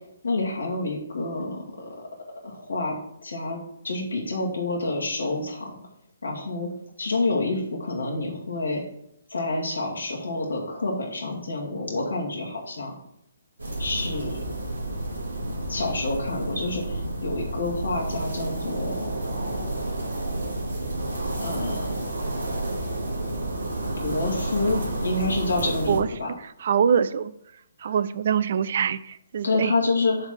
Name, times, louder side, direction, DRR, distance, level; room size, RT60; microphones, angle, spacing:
voice 1, 0.2-1.9 2.4-3.0 3.2-3.6 3.8-5.7 6.2-6.7 7.0-8.8 9.3-12.9 13.8-14.4 15.7-19.1 21.4-22.0 24.0-26.3 27.8-28.0 29.4-30.3, left 2 dB, 75° left, -2 dB, 2.1 m, -28 dB
sound 1, 13.6-26.0, right 1 dB, 80° right, 2.1 m, -30 dB
voice 2, 26.4-27.3 27.8-29.8, right 7 dB, 55° right, 16 dB, 0.4 m, -24 dB
7.2 x 3.5 x 6.3 m, 0.75 s
figure-of-eight pair, 135°, 0 cm